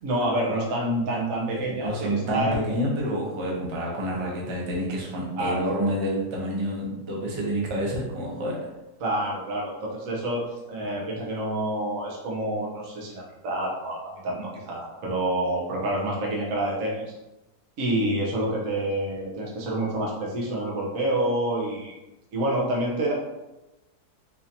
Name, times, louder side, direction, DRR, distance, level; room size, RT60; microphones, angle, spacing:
voice 1, 0.0-2.6 5.4-5.7 9.0-17.1 17.8-22.0 22.3-23.1, right 1 dB, 65° right, -2 dB, 1.1 m, -28 dB
voice 2, 1.4-8.6, equal, 30° right, -3 dB, 0.5 m, -28 dB
4.1 x 2.8 x 2.7 m, 0.99 s
omnidirectional pair, 1.6 m